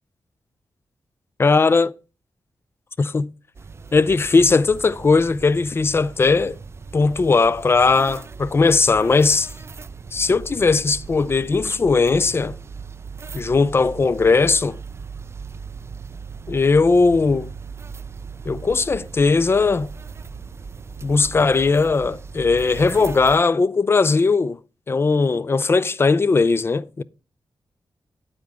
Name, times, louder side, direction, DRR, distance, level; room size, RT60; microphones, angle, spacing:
voice 1, 1.4-1.9 3.0-3.3 3.9-6.6 6.9-9.5 10.1-12.6 13.3-14.8 16.5-17.5 18.5-19.9 21.0-24.6 24.9-27.0, left 4 dB, 30° left, 0.4 m, -18 dB
sound 1, 3.5-23.4, right 5 dB, 30° right, 0.4 m, -38 dB
9.2 x 8.8 x 3.5 m
wide cardioid pair, 125°, 8 cm